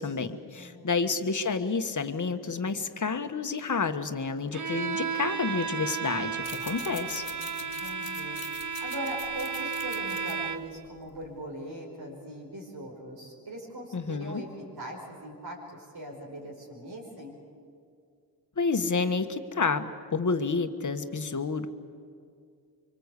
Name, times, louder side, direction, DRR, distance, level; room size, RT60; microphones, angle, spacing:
voice 1, 0.0-7.2 13.9-14.4 18.6-21.7, left 4 dB, 50° left, 8 dB, 1.4 m, -29 dB
voice 2, 0.5-1.2 6.6-8.4 8.8-17.4, right 1 dB, 70° right, -3 dB, 5.2 m, -41 dB
Bowed string instrument, 4.5-10.8, right 6 dB, 50° right, 1.2 m, -33 dB
sound 1, 6.3-11.5, left 6 dB, 65° left, 1.8 m, -46 dB
25.0 x 24.5 x 8.3 m, 2.3 s
wide cardioid pair, 85°, 40 cm